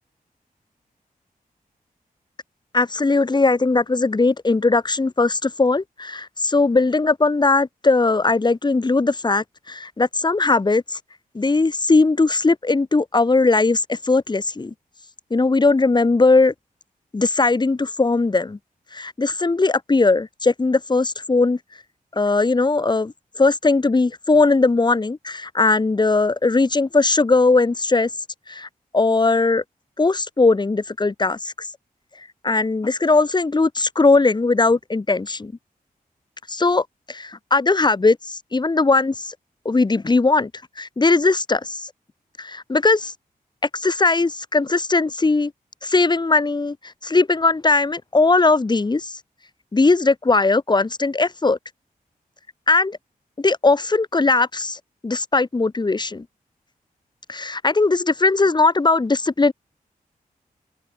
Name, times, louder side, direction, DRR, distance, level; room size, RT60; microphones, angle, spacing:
voice 1, 2.7-11.0 11.3-14.7 15.3-16.5 17.1-18.6 18.9-21.6 22.2-23.1 23.4-28.1 28.5-28.7 28.9-29.6 30.0-31.5 32.4-35.5 36.5-39.3 39.6-40.5 40.8-41.9 42.4-43.1 43.8-45.5 45.8-46.8 47.0-49.1 49.7-51.6 52.7-53.0 53.4-54.8 55.0-56.2 57.3-59.5, left 3 dB, 30° left, 3.0 m, -19 dB
open air
wide cardioid pair, 130°, 15 cm